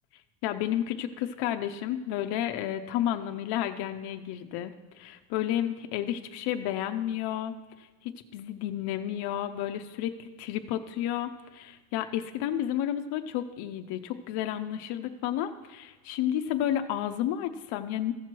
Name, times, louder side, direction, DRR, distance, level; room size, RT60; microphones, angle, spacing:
voice 1, 0.4-18.1, left 11 dB, 80° left, 7 dB, 0.6 m, -31 dB
14.5 x 6.0 x 4.6 m, 1.2 s
cardioid pair, 150°, 39 cm